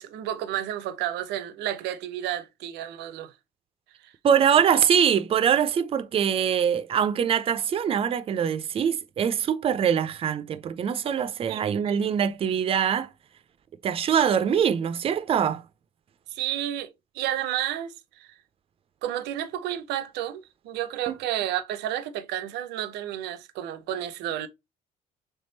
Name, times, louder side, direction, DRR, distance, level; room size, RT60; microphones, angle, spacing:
voice 1, 0.0-3.3 4.0-4.1 11.5-12.0 16.3-18.3 19.0-24.5, right 12 dB, 85° right, 0.6 m, -31 dB
voice 2, 4.2-13.1 13.8-15.6 21.1-21.2, right 8 dB, 35° right, 0.4 m, -23 dB
3.5 x 3.3 x 2.7 m
cardioid pair, 110°, 17 cm